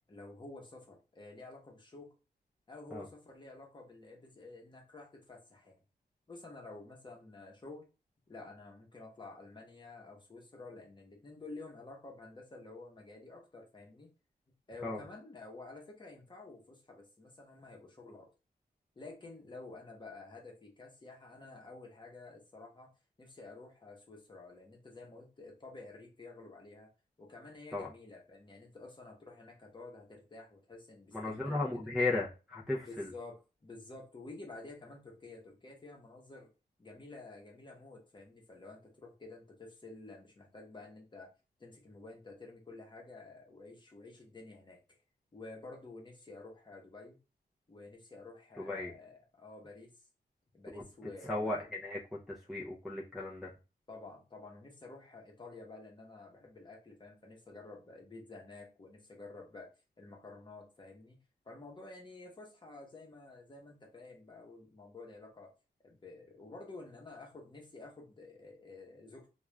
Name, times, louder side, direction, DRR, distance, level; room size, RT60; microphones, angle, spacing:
voice 1, 0.0-2.1 2.7-5.8 6.3-7.9 8.3-14.1 14.7-18.3 19.0-22.9 23.2-26.9 27.2-31.8 32.8-36.5 36.8-41.3 41.6-45.0 45.3-47.2 47.7-50.1 50.5-51.6 53.9-59.7 60.0-61.2 61.4-65.5 65.8-69.3, left 3 dB, 25° left, 1 dB, 0.9 m, -51 dB
voice 2, 31.1-33.1 48.6-48.9 50.7-50.8 51.3-52.0 52.3-53.5, left 2 dB, ahead, -6 dB, 0.5 m, -35 dB
2.3 x 2.3 x 3.1 m, 0.31 s
wide cardioid pair, 100°, 17 cm